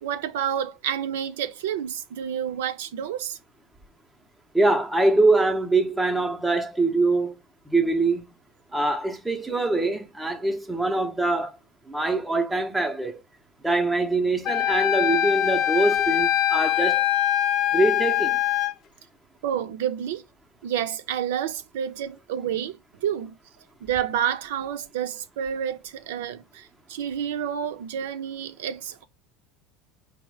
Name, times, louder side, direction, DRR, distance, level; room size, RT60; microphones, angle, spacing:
voice 1, 0.0-3.4 19.4-20.2 20.6-23.3 23.8-29.0, right 9 dB, 90° right, 0.5 m, -29 dB
voice 2, 4.5-7.3 7.7-8.2 8.7-11.5 11.9-13.2 13.6-17.0 17.7-18.4, right 2 dB, 5° right, 0.6 m, -23 dB
Wind instrument woodwind instrument, 14.5-18.7, left 13 dB, 40° left, 0.4 m, -23 dB
4.4 x 2.0 x 4.6 m
supercardioid pair, 150°, 0 cm